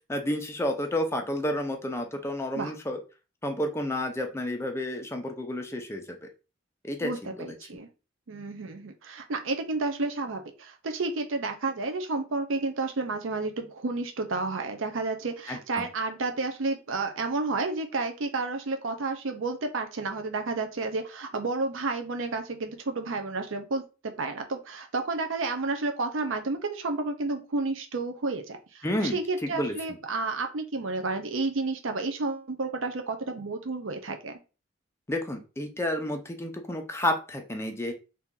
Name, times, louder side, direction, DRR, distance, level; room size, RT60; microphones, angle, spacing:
voice 1, 0.1-3.0 3.4-6.3 6.8-7.1 7.4-7.5 15.5-15.9 28.8-29.2 29.5-29.7 35.1-37.9, left 1 dB, 15° left, 4 dB, 0.6 m, -30 dB
voice 2, 7.0-7.9 8.3-28.8 29.1-34.3, right 3 dB, 85° right, 6 dB, 0.6 m, -31 dB
2.8 x 2.6 x 3.6 m, 0.32 s
head